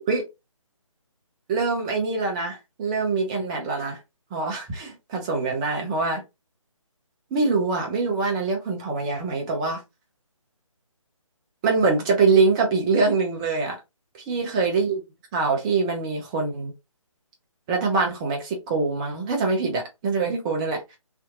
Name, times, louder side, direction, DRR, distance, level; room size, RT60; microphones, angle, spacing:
voice 1, 1.5-4.0 4.3-6.2 7.3-9.8 11.6-13.8 14.3-15.0 15.3-16.7 17.7-20.8, right 4 dB, 10° right, 0.5 m, -24 dB
3.3 x 2.7 x 2.3 m
figure-of-eight pair, 145°, 17 cm